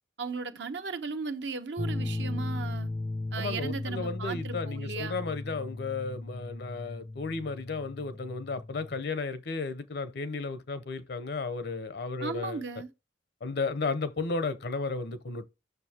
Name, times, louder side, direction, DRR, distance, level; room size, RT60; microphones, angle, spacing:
voice 1, 0.2-2.9 3.3-5.2 12.2-12.9, right 4 dB, 70° right, 0.8 m, -36 dB
sound 1, 1.8-9.0, left 2 dB, 20° left, 0.3 m, -36 dB
voice 2, 3.4-12.6 13.4-15.5, left 3 dB, 60° left, 0.7 m, -34 dB
6.8 x 6.4 x 2.8 m
head